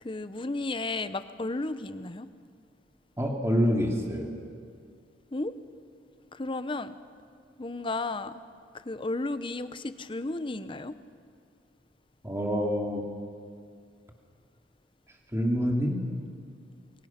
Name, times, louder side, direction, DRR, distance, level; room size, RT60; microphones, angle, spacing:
voice 1, 0.0-2.3 5.3-5.5 6.3-6.9 7.6-8.4 8.7-11.0, left 2 dB, 25° left, 12 dB, 0.8 m, -33 dB
voice 2, 3.2-4.3 12.2-13.0 15.3-16.0, equal, 15° right, 0 dB, 2.6 m, -26 dB
29.5 x 22.5 x 5.9 m, 2.2 s
head